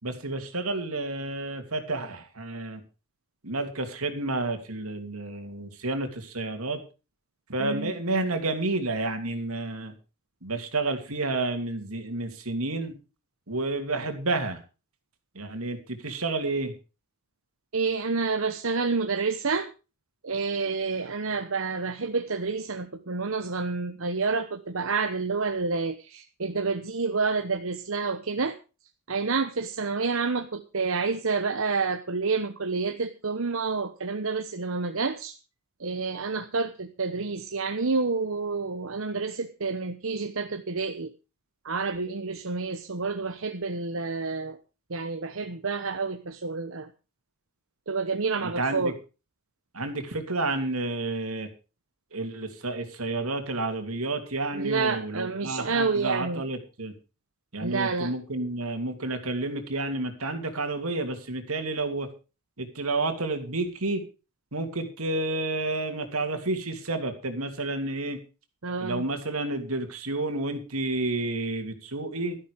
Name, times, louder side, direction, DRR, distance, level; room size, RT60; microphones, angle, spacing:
voice 1, 0.0-2.8 3.4-6.8 7.5-9.9 10.4-12.9 13.5-14.6 15.3-16.7 48.4-48.9 49.7-51.5 52.1-56.9 57.5-62.1 62.6-64.0 64.5-68.2 68.8-72.4, right 2 dB, 90° right, 6 dB, 3.0 m, -30 dB
voice 2, 7.6-7.9 17.7-19.7 20.2-28.6 29.1-35.4 35.8-41.1 41.6-44.6 44.9-46.9 47.9-48.9 54.5-56.4 57.6-58.1 68.6-69.0, right 4 dB, 70° right, 7 dB, 1.0 m, -29 dB
13.0 x 12.0 x 5.1 m, 0.32 s
head